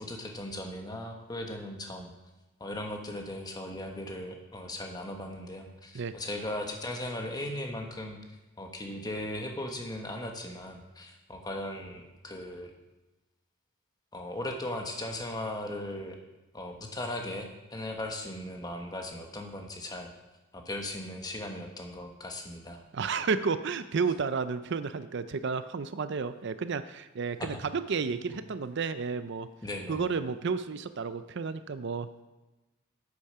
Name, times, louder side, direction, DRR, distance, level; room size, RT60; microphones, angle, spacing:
voice 1, 0.0-2.1 2.6-8.2 8.6-12.7 14.1-16.2 16.5-20.1 20.5-22.8 27.4-27.6 28.1-28.4 29.6-30.0, left 1 dB, 20° left, 2 dB, 1.3 m, -38 dB
voice 2, 22.9-29.5 29.9-32.2, right 5 dB, 55° right, 12 dB, 0.5 m, -32 dB
8.4 x 8.4 x 5.6 m, 1.1 s
head